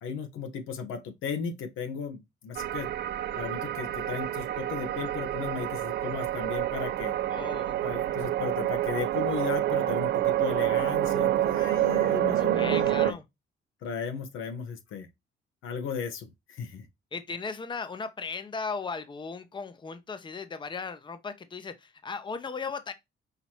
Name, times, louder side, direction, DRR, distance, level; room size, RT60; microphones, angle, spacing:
voice 1, 0.0-2.9 3.3-7.1 7.8-13.2 13.8-15.1 15.6-16.9, left 6 dB, 85° left, 1.1 m, -35 dB
sound 1, 2.6-13.1, right 13 dB, 60° right, 0.4 m, -28 dB
voice 2, 7.3-7.8 12.4-13.2 17.1-22.9, left 5 dB, 25° left, 0.7 m, -37 dB
5.7 x 2.9 x 2.9 m
cardioid pair, 90°, 20 cm